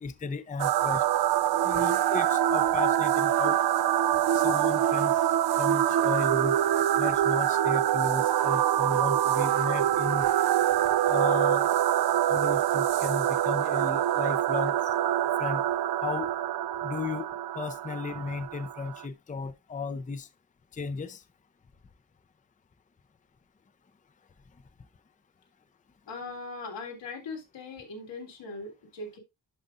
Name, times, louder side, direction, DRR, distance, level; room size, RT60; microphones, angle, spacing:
voice 1, 0.0-1.0 1.6-3.6 4.3-5.2 5.6-6.6 7.0-10.2 11.1-11.7 12.3-14.7 15.4-15.6 16.0-16.3 16.8-20.3 20.7-21.2, left 4 dB, 20° left, 0.6 m, -34 dB
sound 1, 0.6-19.0, right 12 dB, 60° right, 0.5 m, -25 dB
voice 2, 26.1-29.2, left 3 dB, 90° left, 3.2 m, -40 dB
11.0 x 5.1 x 2.5 m
wide cardioid pair, 110°, 42 cm